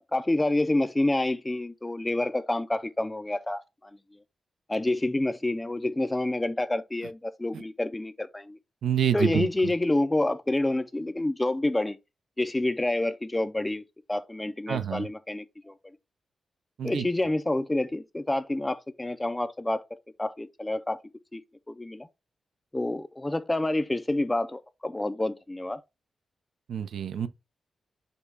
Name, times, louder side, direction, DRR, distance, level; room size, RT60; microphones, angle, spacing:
voice 1, 0.1-3.9 4.7-8.6 9.1-12.0 12.4-13.8 14.1-15.7 16.8-19.8 20.2-21.0 21.3-21.4 21.7-22.1 22.7-25.8, left 1 dB, 10° left, 0.3 m, -28 dB
voice 2, 8.8-9.7 14.7-15.1 16.8-17.1 26.7-27.3, right 9 dB, 85° right, 0.5 m, -28 dB
5.2 x 2.2 x 4.6 m
wide cardioid pair, 145°, 0 cm